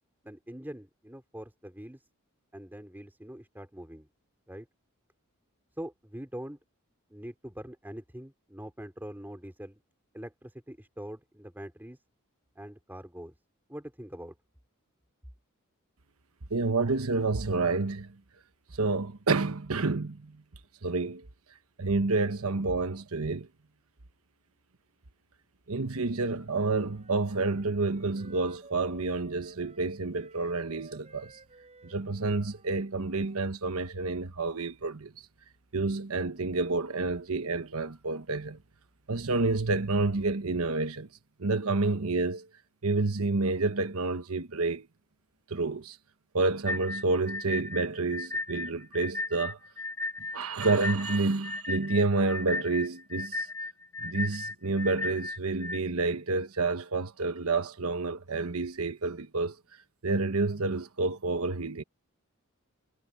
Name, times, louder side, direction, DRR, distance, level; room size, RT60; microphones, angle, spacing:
voice 1, 0.2-2.0 2.5-4.1 4.5-4.7 5.8-6.6 7.1-9.8 10.1-12.0 12.5-13.3 13.7-14.3, equal, 10° right, 3.3 m, -43 dB
voice 2, 16.5-18.1 18.8-20.4 20.8-21.2 21.8-23.5 25.7-31.3 31.8-35.1 35.7-38.6 39.1-41.1 41.4-42.5 42.8-44.9 45.5-46.0 46.3-49.6 50.3-53.5 54.0-59.5 60.0-61.8, right 3 dB, 75° right, 1.2 m, -29 dB
Wind instrument woodwind instrument, 26.2-34.0, right 3 dB, 30° right, 6.8 m, -56 dB
sound 1, 46.7-55.8, left 2 dB, 15° left, 1.6 m, -35 dB
head